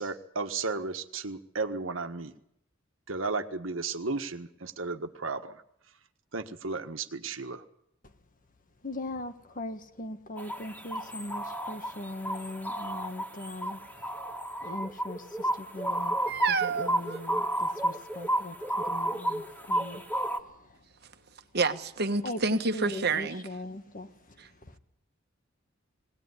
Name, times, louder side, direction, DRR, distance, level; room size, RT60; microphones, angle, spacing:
voice 1, 0.0-2.3 3.1-5.6 6.3-7.6, right 3 dB, 80° right, 1.5 m, -34 dB
voice 2, 8.8-14.2 14.6-16.2 16.5-20.8 22.2-24.8, left 1 dB, 45° left, 1.6 m, -40 dB
sound 1, 10.4-20.4, right 1 dB, 10° left, 2.1 m, -32 dB
voice 3, 16.3-17.2 21.5-23.4, right 4 dB, 55° right, 1.4 m, -28 dB
20.5 x 18.0 x 9.7 m
head